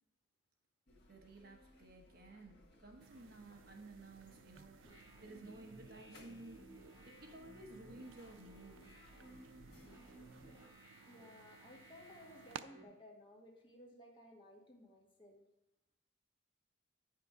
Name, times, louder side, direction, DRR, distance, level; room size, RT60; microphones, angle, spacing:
sound 1, 0.9-10.7, equal, 55° left, 1.6 m, -64 dB
voice 1, 1.1-6.6 7.0-8.8, right 2 dB, 50° right, 3 dB, 1.2 m, -55 dB
sound 2, 3.0-12.6, right 7 dB, 85° right, 0.4 m, -58 dB
sound 3, 4.8-12.8, right 1 dB, 15° right, 2.4 m, -59 dB
voice 2, 11.0-15.5, left 1 dB, 25° left, -1 dB, 1.6 m, -58 dB
9.1 x 5.8 x 4.9 m, 0.89 s
head